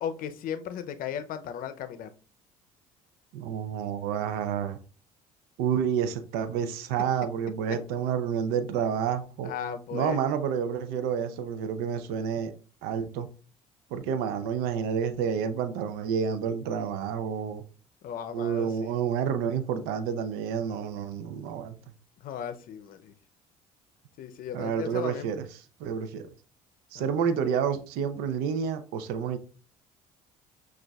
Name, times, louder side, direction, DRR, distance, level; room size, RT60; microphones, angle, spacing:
voice 1, 0.0-2.1 9.4-10.2 18.0-18.9 22.2-23.1 24.2-25.3 26.9-27.0, left 8 dB, 60° left, 0.6 m, -36 dB
voice 2, 3.3-4.8 5.6-9.5 9.9-12.5 12.8-13.3 13.9-17.6 18.3-21.8 24.5-25.5 25.8-26.3 26.9-29.4, right 7 dB, 75° right, 0.5 m, -29 dB
6.1 x 2.4 x 2.3 m
hypercardioid pair, 65°, 17 cm